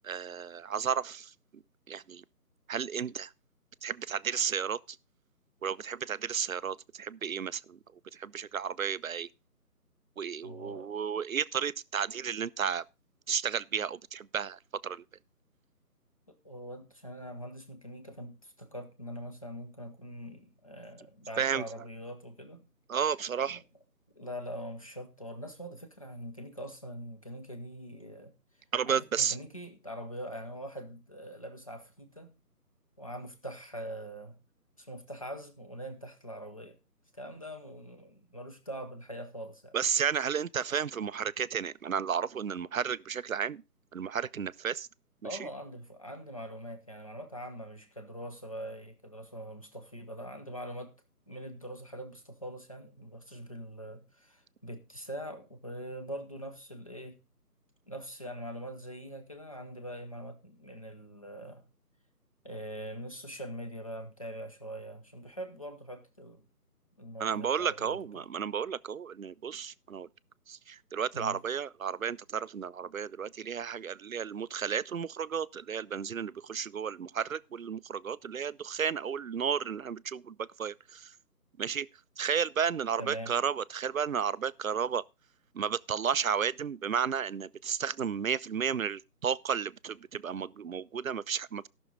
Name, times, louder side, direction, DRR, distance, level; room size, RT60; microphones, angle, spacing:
voice 1, 0.0-1.3 1.9-2.2 2.7-3.3 3.8-4.8 5.6-7.8 8.1-9.3 10.2-12.8 13.3-15.0 21.4-21.6 22.9-23.6 28.7-29.4 39.7-43.6 43.9-44.9 45.4-45.5 67.2-70.1 70.5-81.1 81.6-81.9 82.2-85.0 85.5-91.7, right 7 dB, 60° right, 0.5 m, -32 dB
voice 2, 10.4-10.9 16.3-22.7 23.5-23.6 24.1-28.4 28.9-32.3 33.0-34.4 34.8-36.8 37.1-39.8 45.2-50.9 51.3-57.2 57.9-61.7 62.4-66.5 67.0-68.2 71.1-71.4 83.0-83.4, equal, 20° left, 0.8 m, -43 dB
17.0 x 6.3 x 3.8 m
figure-of-eight pair, 165°, 48 cm